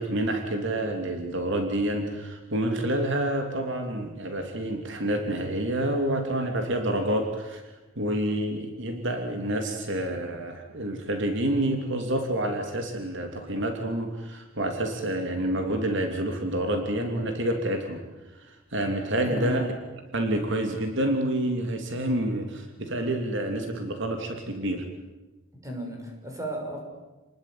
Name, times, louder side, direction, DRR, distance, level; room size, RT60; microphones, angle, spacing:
voice 1, 0.0-7.6 8.0-18.0 18.7-19.6 20.1-24.8, right 1 dB, 60° right, 4 dB, 3.0 m, -28 dB
voice 2, 19.2-19.7 25.6-26.8, right 1 dB, 15° right, 2 dB, 6.4 m, -34 dB
29.5 x 20.5 x 9.3 m, 1.1 s
head